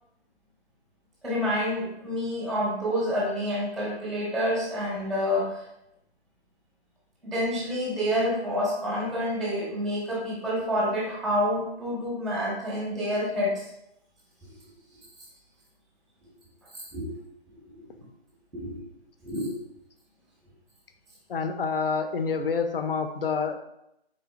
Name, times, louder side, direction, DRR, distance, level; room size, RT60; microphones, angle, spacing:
voice 1, 1.2-5.6 7.2-13.7 16.7-17.1 17.5-17.8 18.5-18.8 19.2-19.5, equal, 5° left, -5 dB, 0.7 m, -28 dB
voice 2, 21.3-23.6, left 5 dB, 60° left, 7 dB, 0.5 m, -27 dB
3.9 x 3.8 x 2.4 m, 0.82 s
figure-of-eight pair, 160°, 32 cm